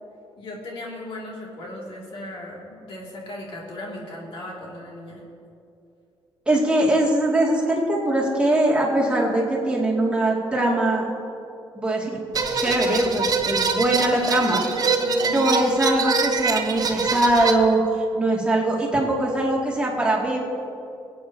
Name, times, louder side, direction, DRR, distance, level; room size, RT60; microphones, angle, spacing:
voice 1, 0.4-5.2 15.0-15.4, left 1 dB, 65° left, -3 dB, 2.4 m, -37 dB
voice 2, 6.5-11.0 11.8-12.2 12.5-14.6 15.3-17.8 18.1-20.4, right 1 dB, 10° right, -4 dB, 2.2 m, -21 dB
sound 1, 12.3-17.5, right 4 dB, 40° right, 0.8 m, -24 dB
23.5 x 8.6 x 2.8 m, 2.6 s
cardioid pair, 125°, 10 cm